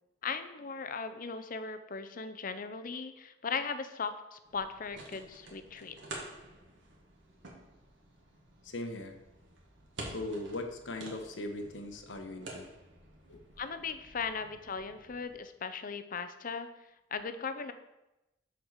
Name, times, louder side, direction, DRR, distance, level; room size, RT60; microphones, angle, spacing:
voice 1, 0.2-6.2 13.6-16.7 17.1-17.7, left 5 dB, 50° left, 10 dB, 0.6 m, -38 dB
sound 1, 4.4-15.4, right 2 dB, 90° right, 2.0 m, -49 dB
voice 2, 8.6-9.2 10.1-12.7 13.3-13.4, left 2 dB, 85° left, 5 dB, 1.1 m, -39 dB
8.0 x 4.7 x 6.5 m, 0.95 s
head